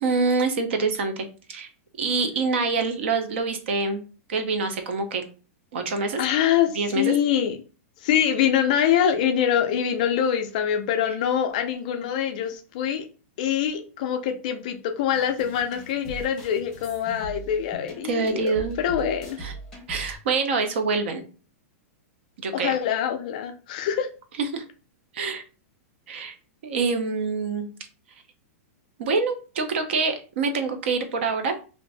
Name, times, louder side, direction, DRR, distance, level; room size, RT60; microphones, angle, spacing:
voice 1, 0.0-1.7 2.0-4.0 4.3-5.2 5.7-6.2 6.7-7.1 18.0-18.8 19.0-19.1 19.4-19.5 19.9-21.2 22.4-22.8 24.5-24.6 25.1-25.4 26.1-26.3 26.6-27.7 29.0-31.5, right 4 dB, 50° right, 7 dB, 0.6 m, -26 dB
voice 2, 6.2-7.6 8.0-13.0 13.4-19.4 22.5-24.1, left 9 dB, 30° left, 6 dB, 0.3 m, -24 dB
sound 1, 15.1-20.2, right 2 dB, 5° left, 0.8 m, -40 dB
2.5 x 2.5 x 3.2 m, 0.36 s
supercardioid pair, 180°, 8 cm